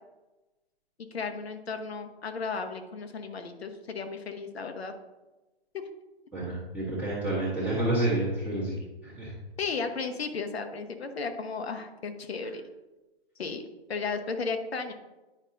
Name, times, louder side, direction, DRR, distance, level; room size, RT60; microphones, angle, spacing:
voice 1, 1.1-4.9 5.7-5.8 9.6-12.6 13.4-13.6 13.9-14.9, left 4 dB, 75° left, 7 dB, 1.1 m, -34 dB
voice 2, 6.3-9.3 12.4-12.5, right 1 dB, 5° right, -9 dB, 1.3 m, -29 dB
9.7 x 5.3 x 2.6 m, 1.1 s
hypercardioid pair, 160°, 32 cm